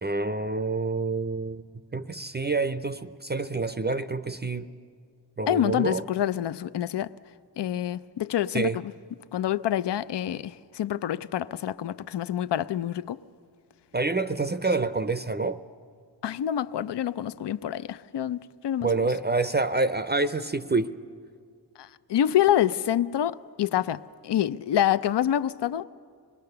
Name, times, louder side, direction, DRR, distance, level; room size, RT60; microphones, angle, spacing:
voice 1, 0.0-1.6 1.9-4.7 5.4-6.0 8.5-8.8 13.9-15.6 18.8-21.0, right 3 dB, 25° right, 0.5 m, -27 dB
voice 2, 5.5-7.1 7.6-8.8 9.3-13.2 16.2-18.9 21.8-25.8, left 11 dB, 75° left, 0.6 m, -27 dB
25.5 x 20.5 x 6.7 m
wide cardioid pair, 70°, 42 cm